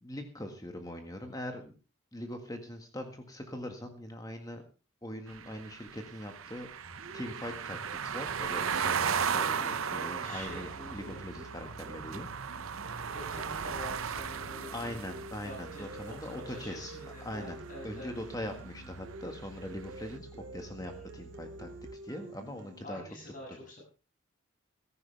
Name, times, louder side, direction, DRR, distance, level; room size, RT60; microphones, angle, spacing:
voice 1, 0.0-1.7 2.1-4.6 5.0-12.3 14.7-21.7 22.0-23.0, left 1 dB, 15° left, 5 dB, 1.7 m, -42 dB
sound 1, 5.3-17.3, right 7 dB, 85° right, 0.7 m, -36 dB
sound 2, 6.8-22.8, right 2 dB, 60° right, 2.8 m, -49 dB
voice 2, 9.5-11.2 12.9-15.2 15.4-18.1 20.7-21.1 22.8-23.8, left 1 dB, 40° left, -1 dB, 7.0 m, -47 dB
sound 3, 10.4-21.9, right 3 dB, 10° right, 5.1 m, -52 dB
16.0 x 14.5 x 3.4 m, 0.33 s
head